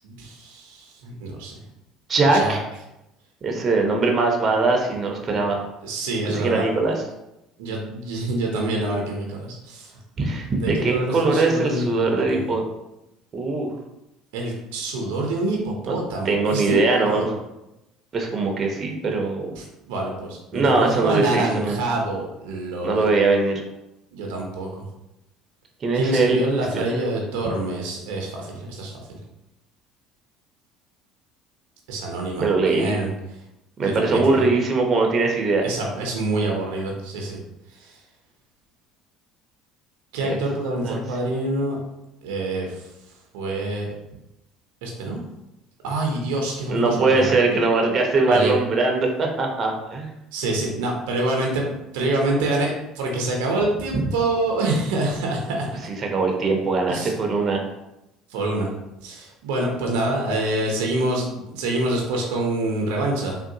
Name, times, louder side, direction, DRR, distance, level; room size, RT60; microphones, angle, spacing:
voice 1, 0.0-1.5 2.3-2.6 5.8-6.7 7.6-9.9 10.6-12.6 14.3-17.3 19.6-23.1 24.1-24.8 25.9-29.2 31.9-33.4 33.8-34.4 35.6-37.4 37.7-38.0 40.1-41.8 42.2-42.9 43.3-43.9 44.8-45.2 45.8-47.3 48.3-48.6 50.3-55.9 56.9-57.1 58.3-58.7 59.0-63.4, right 2 dB, 80° right, 0 dB, 0.6 m, -26 dB
voice 2, 2.1-2.6 3.4-5.7 6.3-6.9 10.2-12.6 13.3-13.7 15.9-16.0 16.2-17.3 18.1-19.5 20.5-21.8 22.8-23.6 25.8-26.9 32.4-32.9 33.8-35.6 40.2-40.4 40.8-41.0 46.7-50.1 56.0-57.6, right 3 dB, 40° right, 2 dB, 0.6 m, -21 dB
3.6 x 2.3 x 2.7 m, 0.91 s
hypercardioid pair, 75°, 0 cm